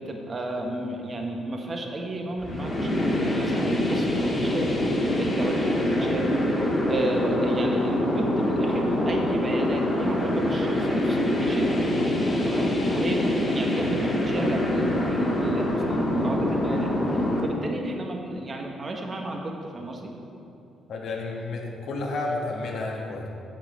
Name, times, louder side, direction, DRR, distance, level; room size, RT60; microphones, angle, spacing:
voice 1, 0.0-6.4 6.9-11.7 12.4-16.9 17.4-20.1, right 1 dB, 35° right, 2 dB, 1.2 m, -32 dB
sound 1, 2.4-17.4, left 1 dB, 25° left, 1.9 m, -25 dB
voice 2, 20.9-23.3, left 2 dB, 70° left, -1 dB, 1.4 m, -31 dB
7.5 x 7.3 x 4.8 m, 2.8 s
cardioid pair, 90°, 0 cm